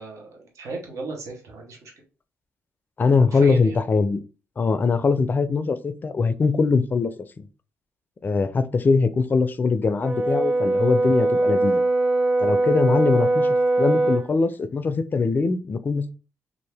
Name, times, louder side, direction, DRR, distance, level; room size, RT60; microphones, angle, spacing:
voice 1, 0.0-1.9 3.3-3.8, right 2 dB, 70° right, 1.0 m, -35 dB
voice 2, 3.0-4.2 4.6-7.1 7.4-7.5 8.2-11.8 12.4-13.5 13.8-16.1, left 4 dB, 35° left, 0.4 m, -22 dB
Brass instrument, 10.0-14.3, right 2 dB, 20° right, 0.7 m, -21 dB
2.7 x 2.5 x 3.3 m
cardioid pair, 75°, 5 cm